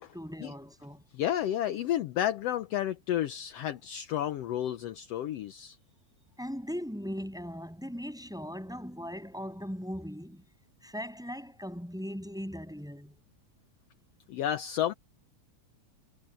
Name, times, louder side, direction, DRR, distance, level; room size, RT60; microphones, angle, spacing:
voice 1, 0.1-1.0 6.4-10.4 10.8-13.2, equal, ahead, 6.6 m, -39 dB
voice 2, 1.1-5.8 14.3-14.9, left 11 dB, 70° left, 1.7 m, -31 dB
omnidirectional pair, 3.4 m